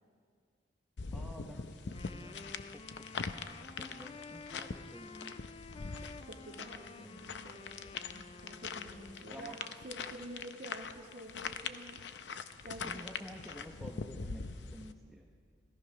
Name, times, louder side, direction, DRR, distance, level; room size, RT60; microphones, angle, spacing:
sound 1, 1.0-14.9, left 5 dB, 70° left, 0.6 m, -43 dB
voice 1, 1.1-2.4 2.7-3.1 3.8-5.4 9.3-9.6 12.8-15.3, equal, ahead, 0 dB, 0.8 m, -51 dB
Wind instrument woodwind instrument, 1.8-9.6, left 4 dB, 30° left, 0.4 m, -52 dB
voice 2, 6.0-12.0 12.6-13.1, right 1 dB, 55° right, -4 dB, 1.6 m, -49 dB
17.0 x 14.5 x 5.8 m, 2.2 s
head